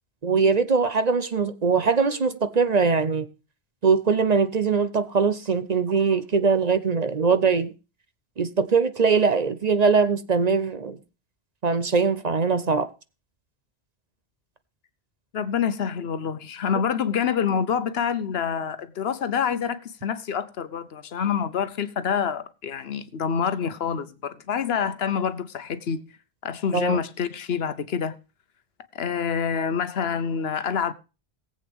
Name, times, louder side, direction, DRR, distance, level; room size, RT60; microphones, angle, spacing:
voice 1, 0.2-3.3 3.8-7.7 8.4-11.0 11.6-12.9 26.7-27.0, right 5 dB, 45° right, 0.8 m, -22 dB
voice 2, 15.3-26.1 26.4-28.1 28.9-30.9, left 7 dB, 75° left, 1.1 m, -27 dB
18.5 x 8.0 x 3.5 m
omnidirectional pair, 1.0 m